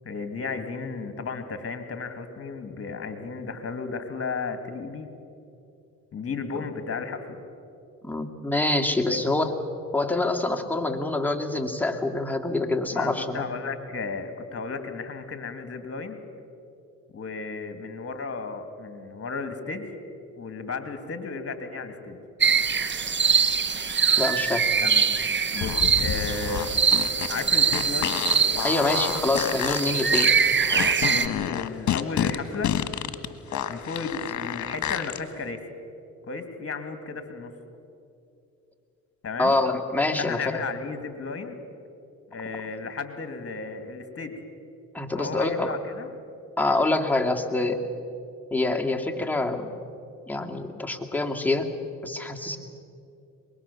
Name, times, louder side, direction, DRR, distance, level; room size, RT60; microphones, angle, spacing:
voice 1, 0.0-5.1 6.1-7.4 9.1-9.2 12.9-16.2 17.1-19.9 20.4-22.2 24.8-25.0 25.5-26.7 27.3-28.2 31.0-32.8 33.7-35.6 36.3-37.5 39.2-39.5 40.2-41.6 42.3-44.4 45.1-46.1, left 4 dB, 45° left, 8 dB, 2.5 m, -34 dB
voice 2, 8.0-9.5 9.9-13.5 24.2-24.6 28.6-30.3 39.4-40.6 44.9-45.7 46.6-47.8 48.5-49.7 50.3-51.7 52.0-52.6, left 2 dB, 5° left, 2 dB, 2.4 m, -26 dB
sound 1, 22.4-31.3, right 5 dB, 35° right, 1.2 m, -23 dB
sound 2, 25.6-35.2, left 10 dB, 60° left, 1.4 m, -29 dB
23.5 x 21.5 x 7.1 m, 2.6 s
supercardioid pair, 70°, 33 cm